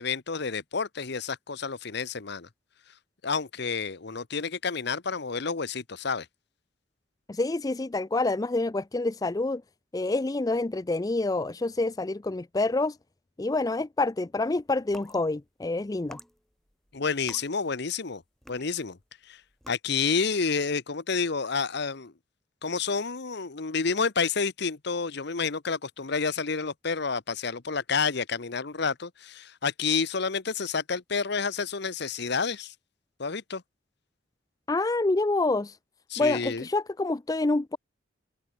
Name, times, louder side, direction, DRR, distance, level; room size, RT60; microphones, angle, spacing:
voice 1, 0.0-2.5 3.2-6.3 16.9-18.2 18.5-19.0 19.3-19.4 19.7-22.1 22.6-32.7 33.2-33.6 36.1-36.6, left 5 dB, 60° left, 1.0 m, -29 dB
voice 2, 7.3-9.6 9.9-13.0 13.4-16.2 34.7-35.8 36.2-37.8, left 2 dB, 20° left, 0.4 m, -27 dB
sound 1, 14.8-15.2 15.9-18.1 18.4-19.0 19.5-19.7, equal, ahead, 3.8 m, -49 dB
open air
head